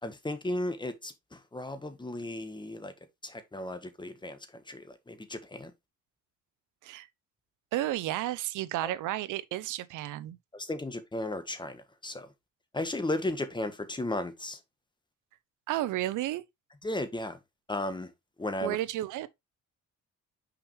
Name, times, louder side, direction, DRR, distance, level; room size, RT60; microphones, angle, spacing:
voice 1, 0.0-2.9 3.2-5.7 10.5-12.3 12.7-14.6 16.8-17.4 17.7-18.1 18.4-18.8, left 1 dB, 15° left, 1.3 m, -35 dB
voice 2, 7.7-10.4 15.7-16.4 18.6-19.3, right 14 dB, 90° right, 0.7 m, -32 dB
6.0 x 5.0 x 3.2 m
cardioid pair, 90°, 30 cm